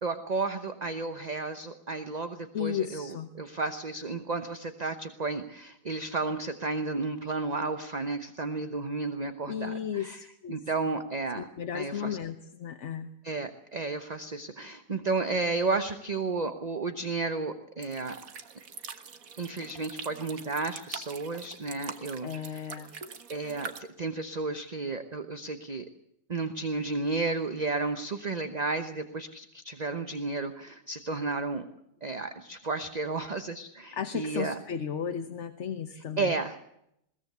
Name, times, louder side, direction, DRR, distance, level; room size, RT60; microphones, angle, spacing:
voice 1, 0.0-10.2 10.5-11.5 11.7-12.2 13.2-18.2 19.4-22.6 23.3-25.9 26.3-31.7 32.0-34.6 36.0-36.6, right 3 dB, 30° right, 8 dB, 0.9 m, -32 dB
voice 2, 2.5-3.3 9.5-10.6 11.4-13.1 22.2-22.9 33.9-36.3, left 8 dB, 50° left, 8 dB, 1.2 m, -34 dB
sound 1, 17.8-23.8, right 6 dB, 55° right, 1.7 m, -44 dB
21.5 x 17.5 x 8.1 m, 0.78 s
omnidirectional pair, 1.8 m